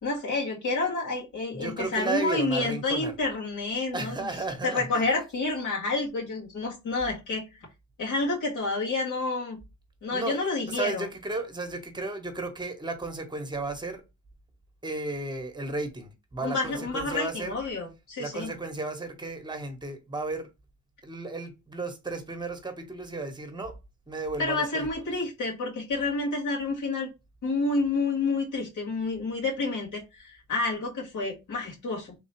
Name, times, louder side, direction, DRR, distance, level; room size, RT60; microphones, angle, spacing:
voice 1, 0.0-4.3 4.6-7.4 8.0-9.6 10.0-11.0 16.4-18.5 24.4-27.1 27.4-32.1, left 3 dB, 80° left, 2.3 m, -29 dB
voice 2, 1.5-3.2 3.9-5.4 10.1-14.0 14.8-17.6 18.2-20.5 21.0-23.7 24.1-25.2, right 3 dB, 15° right, 1.1 m, -34 dB
3.8 x 2.3 x 4.4 m
cardioid pair, 90°, 30 cm